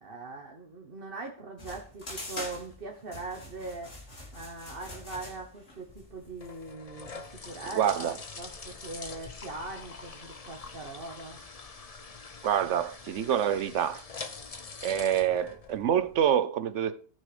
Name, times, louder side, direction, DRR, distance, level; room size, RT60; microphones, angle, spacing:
voice 1, 0.0-3.9 4.3-8.1 8.4-11.4, right 3 dB, 50° right, 1.5 m, -41 dB
sound 1, 1.6-6.7, left 1 dB, 80° left, 2.9 m, -44 dB
sound 2, 5.9-16.3, left 4 dB, 35° left, 0.9 m, -45 dB
voice 2, 7.8-8.1 12.4-14.0 14.8-17.0, right 9 dB, 90° right, 1.1 m, -26 dB
14.5 x 6.1 x 5.0 m
omnidirectional pair, 1.2 m